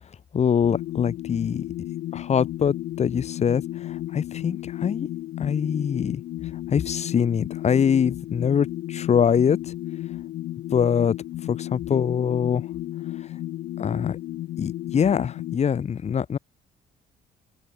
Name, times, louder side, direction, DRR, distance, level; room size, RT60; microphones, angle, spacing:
voice 1, 0.3-1.6 2.1-5.1 5.4-6.2 6.7-9.7 10.7-11.2 11.5-12.6 13.8-14.2 14.6-16.4, left 7 dB, 40° left, 3.4 m, -23 dB
sound 1, 0.6-15.6, left 14 dB, 70° left, 1.5 m, -33 dB
open air
cardioid pair, 110°, 17 cm